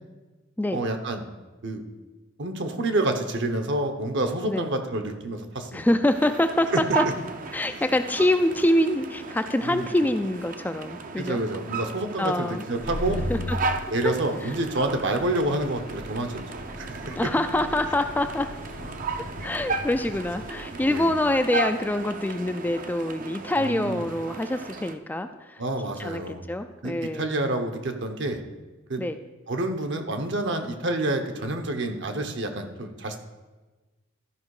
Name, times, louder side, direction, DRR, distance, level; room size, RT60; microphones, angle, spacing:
voice 1, 0.7-1.2 1.6-1.8 2.4-5.9 6.7-6.8 7.7-7.8 9.6-9.9 11.2-13.2 13.9-17.2 20.8-21.1 23.6-24.1 25.6-26.4 26.8-28.4 28.9-29.0 29.5-33.2, right 2 dB, 60° right, 6 dB, 1.0 m, -28 dB
voice 2, 5.7-7.0 7.5-11.4 12.2-12.6 13.3-13.6 14.0-14.1 14.4-14.5 17.0-18.5 19.4-25.6 26.0-27.5 29.0-29.2, left 1 dB, 10° left, 8 dB, 0.3 m, -25 dB
sound 1, 6.0-24.9, right 4 dB, 40° right, 0.6 m, -35 dB
sound 2, 12.7-23.1, left 1 dB, 60° left, 1.0 m, -38 dB
12.5 x 5.3 x 4.8 m, 1.2 s
head